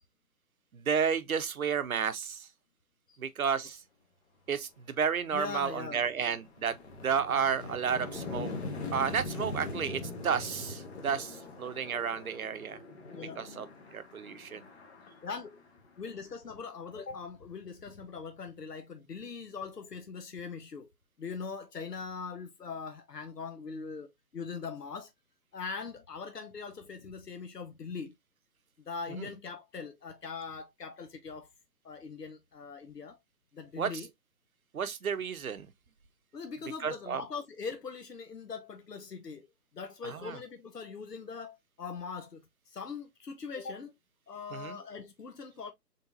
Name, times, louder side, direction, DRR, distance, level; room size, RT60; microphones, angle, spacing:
voice 1, 0.7-2.5 3.2-3.8 4.5-6.7 7.0-8.5 8.9-12.8 13.4-13.7 13.9-14.6 33.8-33.9 34.7-35.7 36.8-37.2 40.0-40.4 44.5-44.8, right 7 dB, 60° right, 0.8 m, -32 dB
sound 1, 4.9-5.0 5.5-16.3, left 3 dB, 45° left, 1.3 m, -42 dB
voice 2, 5.3-6.1 13.1-13.4 15.2-15.6 16.0-20.9 21.2-25.1 25.5-28.1 28.8-31.5 31.8-33.2 33.5-34.1 36.3-39.5 39.7-43.9 44.3-45.7, left 5 dB, 85° left, 1.0 m, -41 dB
4.0 x 3.8 x 2.5 m
figure-of-eight pair, 145°, 47 cm